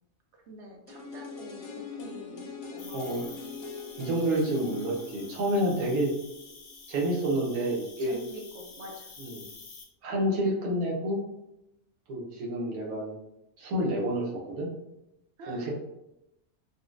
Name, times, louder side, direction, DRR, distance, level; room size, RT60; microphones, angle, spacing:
voice 1, 0.3-3.4 8.0-9.1 15.4-15.7, right 1 dB, 65° right, 1 dB, 0.8 m, -46 dB
sound 1, 0.9-6.8 7.1-7.2, left 5 dB, 85° left, 1.1 m, -42 dB
Cricket, 2.8-9.8, left 4 dB, 60° left, 0.7 m, -48 dB
voice 2, 2.9-3.2 4.0-6.1 6.9-8.2 9.2-9.4 10.0-11.2 12.1-13.2 13.6-14.7 15.5-15.7, right 1 dB, 85° right, -3 dB, 1.2 m, -29 dB
4.0 x 2.1 x 2.4 m, 0.88 s
omnidirectional pair, 1.5 m